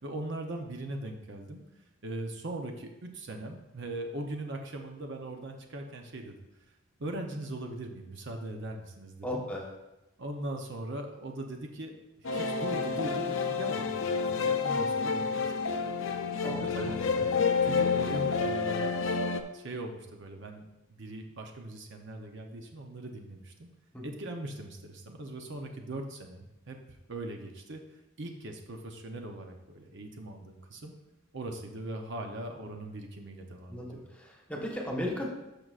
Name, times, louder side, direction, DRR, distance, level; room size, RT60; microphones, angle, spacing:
voice 1, 0.0-1.6 2.0-6.4 7.0-9.4 10.2-15.5 16.4-17.3 17.6-19.2 19.5-20.7 21.0-23.7 24.0-26.8 27.1-27.8 28.2-30.9 31.3-34.1, right 1 dB, 55° right, 3 dB, 0.7 m, -40 dB
voice 2, 9.2-9.6 16.4-16.9 17.3-17.5 18.1-18.3 23.9-24.0 33.7-35.3, equal, 5° left, -2 dB, 1.2 m, -36 dB
sound 1, 12.2-19.4, left 5 dB, 60° left, 0.6 m, -29 dB
11.5 x 6.1 x 2.5 m, 0.99 s
head